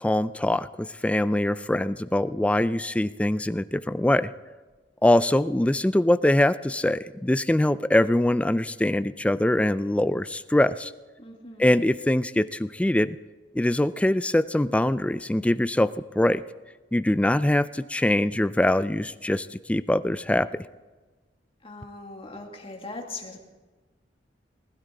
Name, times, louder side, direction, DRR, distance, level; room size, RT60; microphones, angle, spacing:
voice 1, 0.0-4.3 5.0-10.9 11.6-13.2 13.5-16.4 16.9-20.7, left 1 dB, 5° left, 14 dB, 0.3 m, -23 dB
voice 2, 11.2-11.7 21.6-23.4, left 3 dB, 30° left, 1 dB, 2.1 m, -40 dB
20.0 x 12.0 x 3.8 m, 1.2 s
head